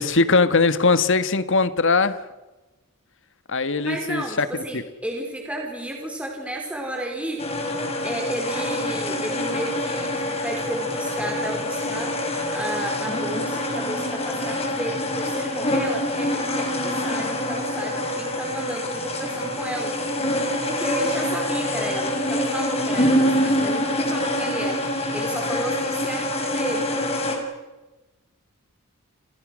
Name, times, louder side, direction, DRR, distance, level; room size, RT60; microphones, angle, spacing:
voice 1, 0.0-2.2 3.5-4.5 4.7-4.8, left 3 dB, 60° left, 12 dB, 1.6 m, -20 dB
voice 2, 3.9-7.7 8.0-19.9 20.7-26.9, right 1 dB, 5° right, 1 dB, 4.5 m, -32 dB
sound 1, 7.4-27.4, left 1 dB, 30° left, 5.8 m, -26 dB
30.0 x 29.5 x 6.4 m, 1.1 s
head